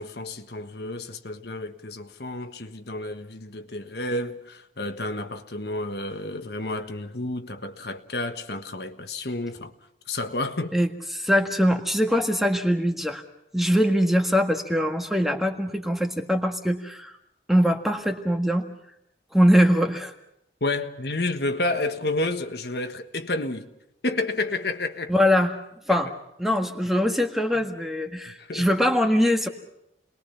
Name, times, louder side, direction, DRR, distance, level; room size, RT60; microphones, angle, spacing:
voice 1, 0.0-9.7 10.1-10.7 20.6-23.7 24.0-25.1 25.9-26.0 27.5-27.7 28.4-28.7, left 2 dB, 60° left, 1.5 m, -30 dB
voice 2, 10.7-13.2 13.5-17.1 17.5-18.6 19.3-20.1 25.1-25.6 25.9-26.1 26.4-29.5, equal, ahead, 1.7 m, -22 dB
30.0 x 21.0 x 5.8 m
head